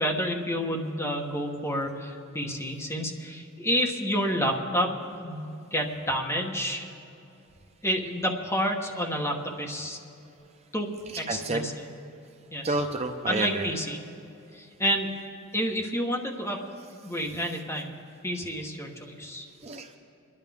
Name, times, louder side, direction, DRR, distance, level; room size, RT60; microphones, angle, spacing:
voice 1, 0.0-6.9 7.8-10.0 10.7-10.9 11.2-11.9 12.5-12.8 13.3-14.0 14.5-15.1 15.5-16.6 17.0-17.9 18.2-19.5, equal, 15° left, 0 dB, 1.2 m, -29 dB
voice 2, 11.3-11.6 12.6-13.7 19.6-20.0, right 2 dB, 30° right, 5 dB, 0.6 m, -29 dB
26.0 x 11.0 x 3.5 m, 2.8 s
head